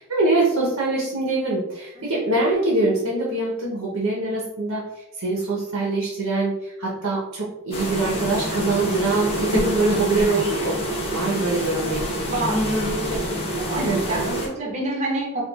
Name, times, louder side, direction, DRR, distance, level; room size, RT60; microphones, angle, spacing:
voice 1, 0.0-4.8 5.2-10.8 11.1-12.1 13.7-14.4, right 2 dB, 85° right, -4 dB, 0.8 m, -23 dB
sound 1, 7.7-14.5, equal, 25° left, 0.7 m, -26 dB
voice 2, 12.2-12.7 13.1-15.4, right 2 dB, 30° right, -3 dB, 0.6 m, -28 dB
4.5 x 2.3 x 2.3 m, 0.93 s
head